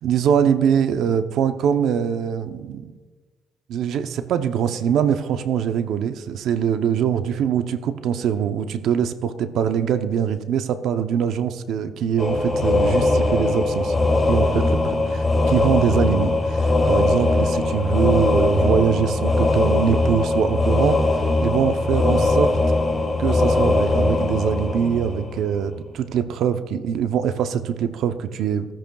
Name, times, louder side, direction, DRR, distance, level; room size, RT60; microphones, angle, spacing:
voice 1, 0.0-2.9 3.7-13.9 14.3-21.0 21.4-22.6 23.2-28.7, right 8 dB, 80° right, 9 dB, 0.7 m, -23 dB
sound 1, 12.2-25.6, left 2 dB, 25° left, 2.6 m, -20 dB
15.5 x 13.5 x 2.3 m, 1.3 s
cardioid pair, 90°, 0 cm